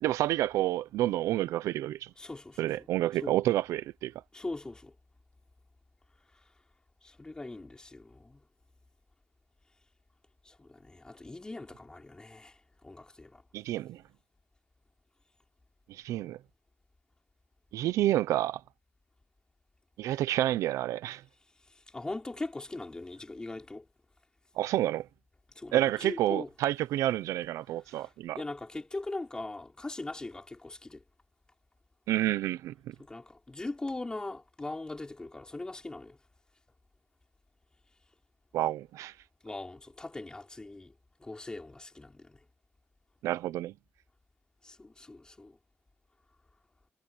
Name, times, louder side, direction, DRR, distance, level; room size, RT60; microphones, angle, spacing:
voice 1, 0.0-2.1 2.6-4.1 13.5-14.0 15.9-16.4 17.7-18.6 20.0-21.2 24.6-25.1 25.7-28.4 32.1-32.9 38.5-39.1 43.2-43.7, right 14 dB, 85° right, 0.8 m, -29 dB
voice 2, 2.2-2.9 3.2-3.3 4.3-4.9 7.0-8.4 10.4-12.6 12.8-13.4 21.9-23.8 25.6-26.5 27.9-28.1 28.4-31.0 33.0-36.2 39.4-40.9 41.2-42.4 44.6-45.5, left 2 dB, 15° left, 5.0 m, -40 dB
cardioid pair, 110°, 5 cm